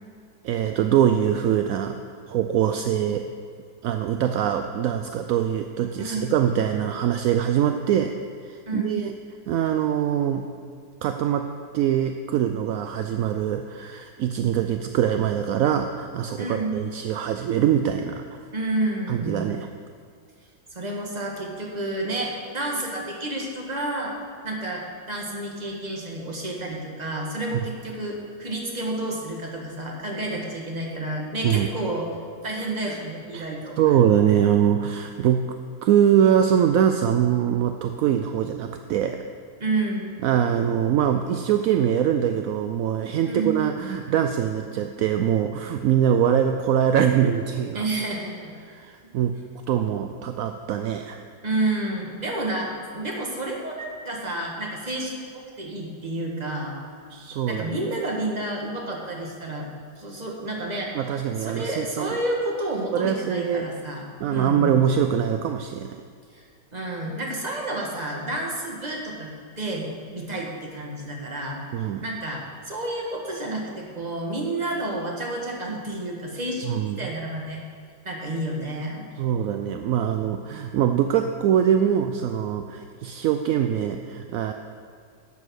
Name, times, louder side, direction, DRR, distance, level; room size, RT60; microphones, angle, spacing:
voice 1, 0.4-2.0 2.3-3.3 3.8-8.1 8.4-9.1 9.5-10.5 11.0-11.5 11.7-18.2 19.1-19.7 31.4-31.7 33.3-33.4 33.8-35.4 35.8-39.2 40.2-47.9 48.6-49.4 49.7-51.2 57.1-57.8 60.9-62.2 62.9-63.7 64.2-66.0 71.7-72.0 76.6-77.0 79.2-84.5, right 9 dB, 70° right, 6 dB, 0.8 m, -23 dB
voice 2, 6.0-6.4 8.7-9.0 16.4-16.8 18.5-19.5 20.7-24.2 24.4-32.1 32.4-33.8 39.6-40.1 43.2-43.6 47.7-48.5 51.4-56.8 57.5-59.7 60.0-60.9 61.4-64.8 66.3-66.4 66.7-69.3 69.6-71.6 72.0-77.6 78.0-79.1, right 2 dB, 25° right, -1 dB, 1.7 m, -30 dB
11.5 x 8.4 x 6.4 m, 2.1 s
omnidirectional pair, 1.9 m